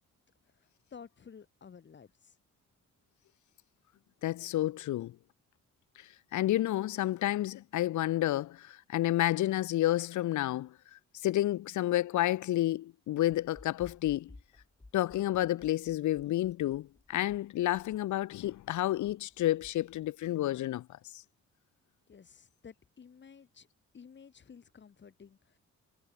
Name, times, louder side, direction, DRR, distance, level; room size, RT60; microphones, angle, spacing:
voice 1, 0.4-2.4 22.1-23.7 23.9-25.6, left 6 dB, 40° left, 6.4 m, -53 dB
voice 2, 4.2-5.2 6.0-14.3 14.9-21.2, left 14 dB, 80° left, 0.8 m, -30 dB
sound 1, 13.5-20.1, left 2 dB, 10° left, 3.2 m, -57 dB
wide cardioid pair, 160°, 29 cm